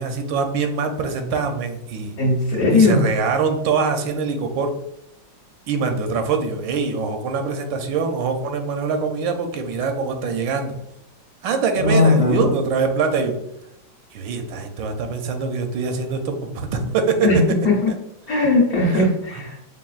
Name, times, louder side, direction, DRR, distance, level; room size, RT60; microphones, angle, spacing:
voice 1, 0.0-2.1 2.7-4.8 5.7-10.8 11.4-13.3 14.1-17.4 18.9-19.1, right 5 dB, 85° right, 6 dB, 1.3 m, -23 dB
voice 2, 2.2-3.1 11.8-12.5 17.2-17.4 17.6-17.9 18.3-19.4, left 2 dB, 60° left, -4 dB, 1.1 m, -18 dB
5.6 x 2.4 x 2.4 m, 0.84 s
omnidirectional pair, 2.0 m